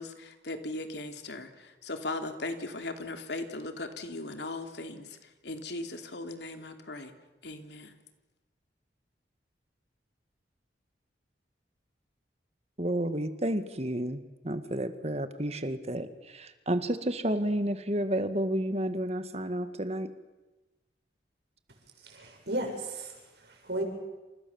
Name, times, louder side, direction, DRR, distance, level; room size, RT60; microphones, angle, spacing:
voice 1, 0.0-7.1 7.4-7.9, left 2 dB, 70° left, 6 dB, 3.0 m, -38 dB
voice 2, 12.8-14.2 14.4-20.1, right 1 dB, 35° right, 10 dB, 1.8 m, -31 dB
voice 3, 22.0-23.8, right 1 dB, 65° right, 3 dB, 7.2 m, -35 dB
28.5 x 28.5 x 7.2 m, 1.1 s
head